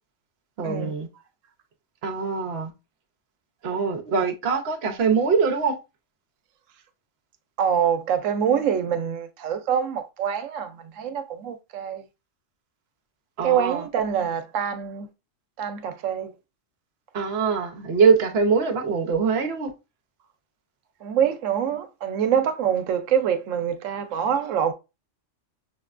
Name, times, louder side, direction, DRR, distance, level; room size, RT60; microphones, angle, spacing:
voice 1, 0.6-1.1 2.0-2.7 3.6-5.8 13.4-13.9 17.1-19.7, right 5 dB, 60° right, 0.9 m, -23 dB
voice 2, 7.6-10.7 11.0-12.0 13.4-15.1 15.6-16.3 21.0-24.7, right 8 dB, 90° right, 0.9 m, -25 dB
5.9 x 2.2 x 2.4 m
omnidirectional pair, 1.3 m